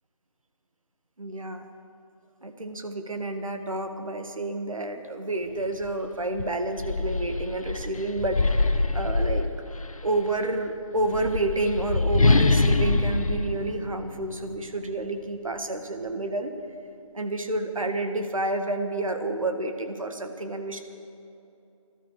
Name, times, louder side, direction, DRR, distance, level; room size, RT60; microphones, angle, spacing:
voice 1, 1.2-1.7 2.4-9.5 10.0-16.5 17.1-20.8, right 2 dB, 70° right, 6 dB, 1.6 m, -29 dB
sound 1, 5.8-6.0 6.4-10.0 10.9-14.6, left 3 dB, 80° left, 1.0 m, -24 dB
19.0 x 13.0 x 4.8 m, 2.7 s
figure-of-eight pair, 165°, 18 cm